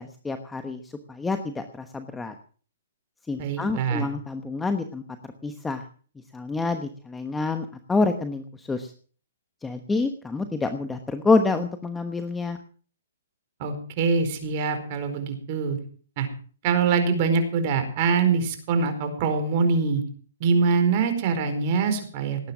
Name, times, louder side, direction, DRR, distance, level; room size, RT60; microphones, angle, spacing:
voice 1, 0.0-2.3 3.3-5.0 5.4-5.8 6.3-8.9 9.6-12.6, left 3 dB, 10° left, 8 dB, 1.1 m, -27 dB
voice 2, 3.4-4.1 13.6-15.8 16.2-16.3 16.6-20.0 20.4-22.4, right 5 dB, 40° right, 8 dB, 4.6 m, -24 dB
18.5 x 9.8 x 6.2 m, 0.43 s
hypercardioid pair, 145°, 0 cm